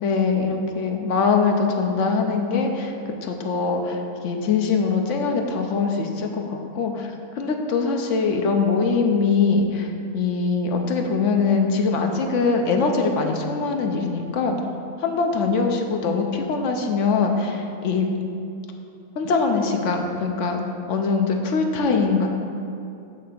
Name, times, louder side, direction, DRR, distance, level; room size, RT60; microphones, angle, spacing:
voice 1, 0.0-2.9 3.2-14.6 15.0-18.0 19.2-20.6 20.9-22.3, left 4 dB, 60° left, 3 dB, 1.0 m, -22 dB
8.5 x 3.3 x 6.6 m, 2.6 s
omnidirectional pair, 1.5 m